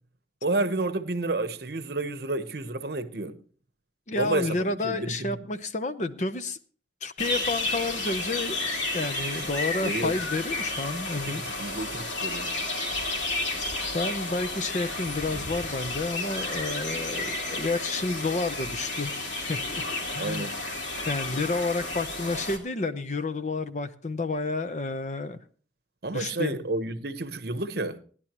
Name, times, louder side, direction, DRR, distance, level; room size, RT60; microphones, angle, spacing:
voice 1, 0.4-3.3 4.2-5.4 9.8-10.1 11.2-12.5 20.2-20.6 26.0-28.0, right 2 dB, 55° right, 0.9 m, -30 dB
voice 2, 4.1-6.6 7.0-8.6 8.9-11.4 13.9-19.1 19.4-19.8 20.1-20.5 21.1-25.4 26.1-26.6, left 3 dB, 40° left, 0.7 m, -30 dB
sound 1, 7.2-22.6, left 2 dB, 80° left, 2.6 m, -32 dB
18.0 x 11.0 x 3.0 m
head